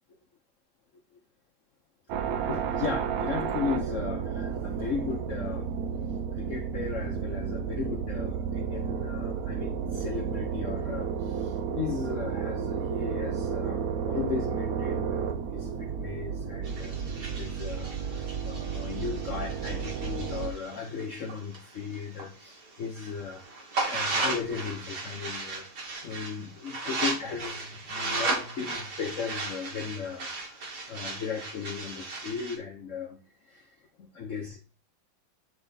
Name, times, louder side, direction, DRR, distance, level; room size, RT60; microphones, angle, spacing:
sound 1, 2.1-20.5, right 7 dB, 85° right, 0.8 m, -32 dB
voice 1, 2.2-5.7 6.3-30.6 30.9-33.2 33.4-33.7 34.0-34.6, left 6 dB, 55° left, 2 dB, 0.9 m, -36 dB
sound 2, 16.6-22.3 22.7-32.6, right 3 dB, 55° right, 2.0 m, -35 dB
8.9 x 3.5 x 4.1 m, 0.38 s
omnidirectional pair, 2.2 m